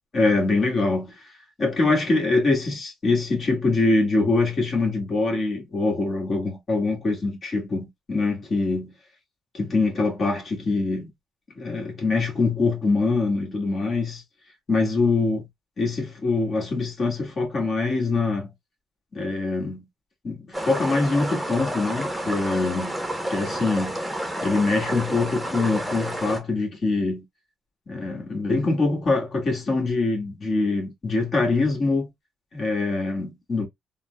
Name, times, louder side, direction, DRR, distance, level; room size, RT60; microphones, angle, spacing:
voice 1, 0.1-1.1 1.6-8.9 9.5-11.1 11.5-14.2 14.7-15.5 15.8-18.5 19.1-19.8 20.2-23.0 23.3-24.0 24.4-27.2 27.9-32.1 32.5-33.7, left 3 dB, 45° left, 1.4 m, -24 dB
sound 1, 20.5-26.4, right 1 dB, 5° right, 0.8 m, -30 dB
3.7 x 2.1 x 2.2 m
cardioid pair, 90°, 0 cm